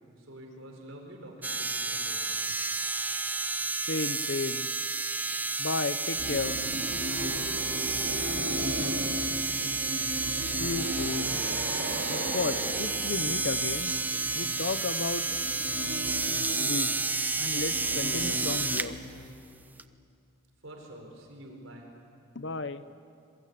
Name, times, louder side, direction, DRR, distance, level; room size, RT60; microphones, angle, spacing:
voice 1, 0.2-2.6 8.1-10.1 20.6-21.9, right 1 dB, 75° right, 2 dB, 4.8 m, -47 dB
sound 1, 1.4-18.9 19.8-19.9, right 3 dB, 10° right, 0.6 m, -31 dB
voice 2, 3.9-4.7 5.6-6.6 10.6-11.4 12.1-14.0 14.3-15.3 16.6-17.0 17.4-19.0 22.3-22.8, left 3 dB, 60° left, 13 dB, 0.8 m, -33 dB
sound 2, 6.2-19.3, equal, 50° right, 3.0 m, -37 dB
26.5 x 22.5 x 8.5 m, 2.5 s
head